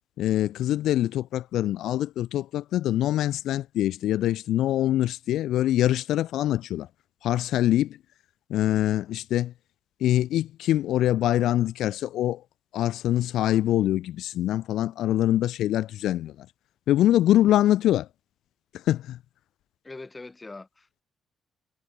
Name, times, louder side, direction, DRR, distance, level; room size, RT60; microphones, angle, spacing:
voice 1, 0.2-6.9 7.2-8.0 8.5-9.5 10.0-12.4 12.7-16.5 16.9-18.1 18.7-19.2, left 13 dB, 80° left, 0.7 m, -24 dB
voice 2, 19.8-21.0, left 3 dB, 20° left, 7.3 m, -42 dB
cardioid pair, 90°, 0 cm